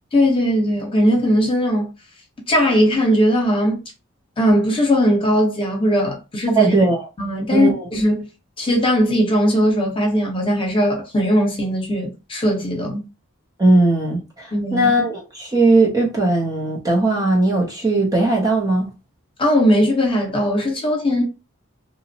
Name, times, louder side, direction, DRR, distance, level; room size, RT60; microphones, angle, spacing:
voice 1, 0.1-1.9 2.5-3.8 4.4-6.8 7.2-8.2 8.6-13.0 14.5-14.9 19.4-21.2, equal, 25° left, 0.9 m, -18 dB
voice 2, 6.6-7.0 7.5-7.8 13.6-18.9, right 2 dB, 15° right, 0.6 m, -18 dB
2.8 x 2.1 x 2.7 m
head